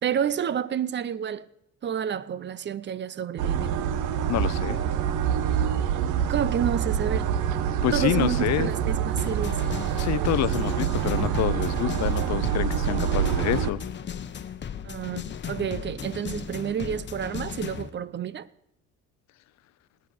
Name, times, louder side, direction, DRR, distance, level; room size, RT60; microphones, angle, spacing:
voice 1, 0.0-1.5 1.8-3.9 6.3-7.3 7.9-9.6 14.8-18.5, right 8 dB, 40° right, 0.7 m, -29 dB
sound 1, 3.4-13.7, right 9 dB, 80° right, 1.1 m, -26 dB
voice 2, 4.3-4.8 7.8-8.7 10.0-13.8, left 14 dB, 65° left, 0.7 m, -27 dB
sound 2, 9.2-17.9, left 8 dB, 35° left, 1.0 m, -36 dB
18.5 x 8.9 x 6.8 m
cardioid pair, 100°, 30 cm